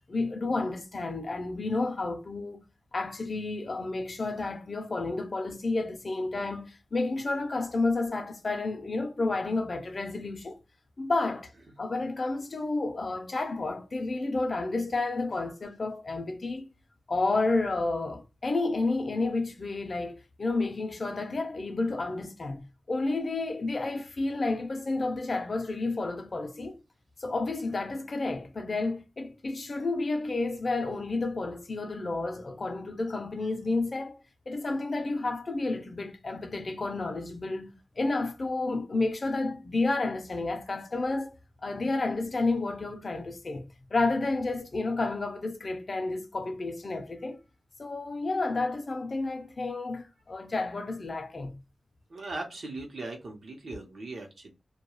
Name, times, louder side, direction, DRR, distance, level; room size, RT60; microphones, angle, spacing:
voice 1, 0.1-2.6 2.9-10.6 11.0-11.5 11.8-16.6 17.1-26.8 27.2-34.2 34.5-41.3 41.6-43.6 43.9-47.4 47.8-51.6, left 3 dB, 45° left, 0.5 m, -31 dB
voice 2, 52.1-54.5, right 2 dB, 65° right, 0.8 m, -39 dB
2.3 x 2.2 x 3.0 m
wide cardioid pair, 120°, 0 cm